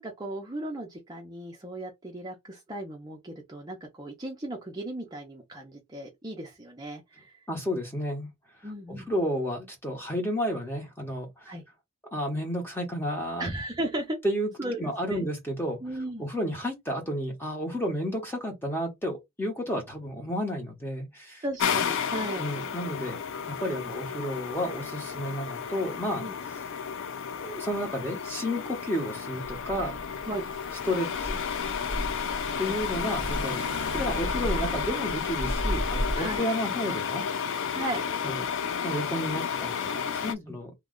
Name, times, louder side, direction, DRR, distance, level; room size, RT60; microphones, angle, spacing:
voice 1, 0.0-7.3 8.6-9.1 11.5-11.6 13.4-14.2 14.6-15.3 15.8-16.3 21.4-22.4 26.2-26.3 30.3-30.4 32.6-32.8 36.2-36.5 37.7-38.0 40.3-40.6, right 1 dB, 20° right, 0.6 m, -36 dB
voice 2, 7.5-8.3 8.9-11.5 12.1-13.5 14.2-14.5 14.8-15.8 16.2-21.4 22.4-23.2 23.5-26.2 26.5-26.6 27.4-30.0 30.9-31.4 32.6-37.2 38.2-38.5 38.8-40.7, equal, 10° left, 1.0 m, -31 dB
sound 1, 21.6-40.3, left 7 dB, 60° left, 0.4 m, -32 dB
Car / Engine, 29.4-36.4, equal, 85° left, 1.5 m, -34 dB
3.0 x 2.3 x 3.7 m
head